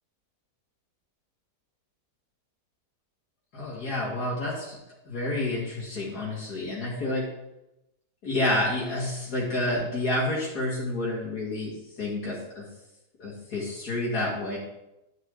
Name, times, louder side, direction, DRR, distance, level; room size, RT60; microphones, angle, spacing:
voice 1, 3.5-4.8 5.1-7.3 8.2-11.7 12.0-12.7 13.2-14.6, left 1 dB, 65° left, -5 dB, 2.5 m, -29 dB
11.5 x 6.7 x 3.8 m, 0.91 s
omnidirectional pair, 1.8 m